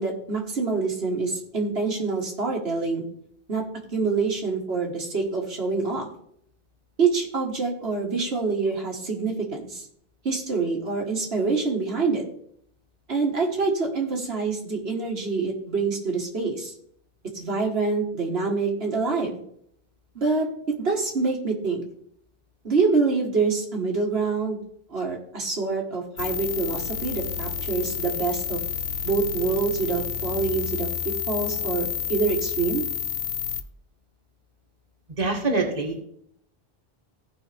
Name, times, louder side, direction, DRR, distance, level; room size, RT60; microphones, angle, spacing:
voice 1, 0.0-3.1 3.5-3.6 3.9-6.1 7.0-9.9 10.2-12.2 13.1-16.7 17.3-19.4 20.2-20.5 20.8-21.8 22.6-24.6 24.9-28.6 29.0-30.9 31.3-32.8, right 4 dB, 80° right, -1 dB, 1.9 m, -26 dB
sound 1, 26.2-33.6, left 8 dB, 55° left, 0.8 m, -30 dB
voice 2, 35.2-36.0, right 3 dB, 40° right, 0 dB, 1.7 m, -25 dB
16.0 x 5.5 x 3.4 m, 0.67 s
omnidirectional pair, 1.0 m